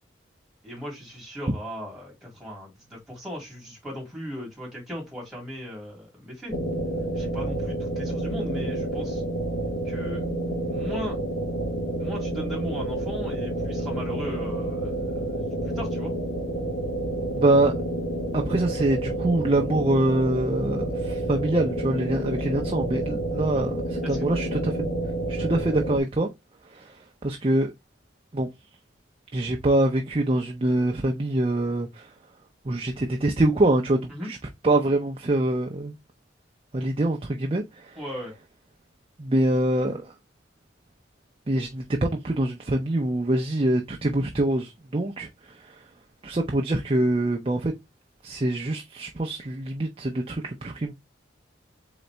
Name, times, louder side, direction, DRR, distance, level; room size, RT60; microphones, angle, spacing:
voice 1, 0.6-6.6 7.1-9.2 9.8-10.3 10.7-11.2 12.0-16.1 23.5-23.6 24.0-24.2 34.1-34.3 38.0-38.3, left 1 dB, ahead, 2.5 m, -37 dB
plasma engine fx, 6.5-26.0, right 1 dB, 45° left, 1.2 m, -29 dB
voice 2, 17.3-17.7 18.3-24.9 25.3-26.3 26.6-27.7 28.3-28.5 29.3-32.1 32.6-34.4 34.6-35.9 36.7-38.0 39.2-40.1 41.5-45.9 46.2-47.7 48.2-50.9, right 1 dB, 30° right, 0.6 m, -25 dB
4.0 x 4.0 x 3.3 m
head